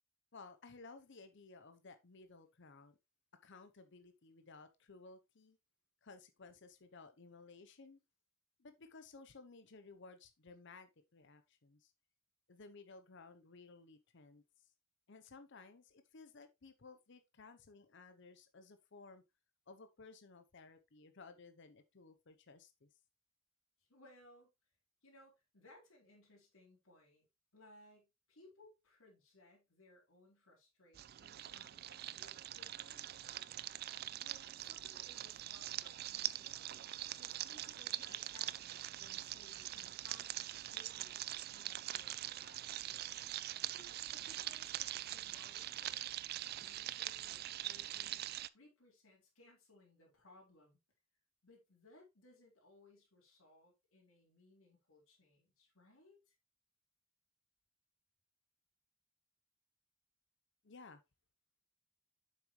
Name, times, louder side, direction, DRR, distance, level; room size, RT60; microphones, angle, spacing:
voice 1, 0.3-3.0 3.4-5.6 6.0-8.0 8.6-11.9 12.5-14.7 15.1-19.2 19.7-22.9 60.6-61.0, left 4 dB, 60° left, 0.8 m, -57 dB
voice 2, 23.8-24.5 25.0-27.3 27.5-33.2 34.0-36.8 37.2-40.3 40.7-48.3 48.5-50.8 51.4-56.4, left 1 dB, 85° left, 3.8 m, -64 dB
sound 1, 30.9-48.5, right 14 dB, 50° right, 0.3 m, -43 dB
7.6 x 6.2 x 3.1 m
head